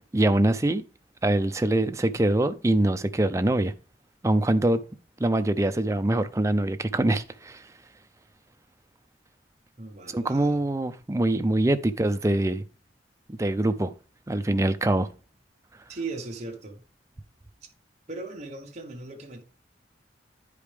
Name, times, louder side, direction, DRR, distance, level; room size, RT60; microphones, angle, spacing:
voice 1, 0.1-0.8 1.2-3.7 4.2-4.8 5.2-7.6 10.1-12.6 13.3-13.9 14.3-15.1, right 1 dB, 15° right, 0.4 m, -24 dB
voice 2, 9.8-10.6 15.9-16.8 17.6-17.7 18.1-19.4, right 3 dB, 35° right, 1.2 m, -38 dB
10.0 x 4.9 x 3.4 m
head